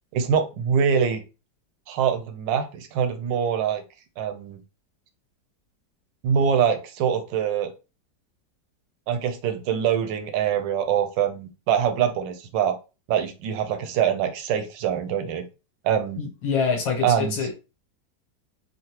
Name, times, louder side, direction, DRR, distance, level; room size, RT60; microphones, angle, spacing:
voice 1, 0.1-1.2 1.9-3.8 4.2-4.6 6.2-7.7 9.1-12.8 13.1-15.5 15.8-16.2 17.0-17.3, right 8 dB, 85° right, 8 dB, 1.3 m, -24 dB
voice 2, 16.2-17.5, left 5 dB, 85° left, 1 dB, 1.6 m, -25 dB
3.7 x 2.0 x 2.8 m, 0.30 s
omnidirectional pair, 1.9 m